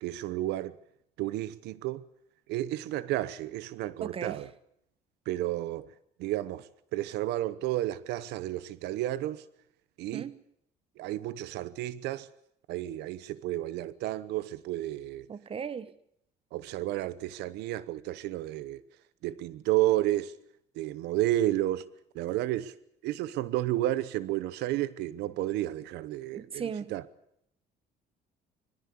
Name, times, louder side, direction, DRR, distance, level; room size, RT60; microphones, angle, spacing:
voice 1, 0.0-0.8 1.2-2.0 2.5-4.5 5.3-5.9 6.2-6.6 6.9-9.4 10.0-10.3 11.0-12.3 12.7-15.3 16.5-18.8 19.2-20.3 20.8-21.8 22.1-22.7 23.0-26.6 26.9-27.0, right 15 dB, 90° right, 0.9 m, -31 dB
voice 2, 4.0-4.5 10.1-10.4 15.3-15.9 26.3-26.9, right 6 dB, 35° right, 1.0 m, -37 dB
23.0 x 15.5 x 8.5 m
cardioid pair, 110°, 17 cm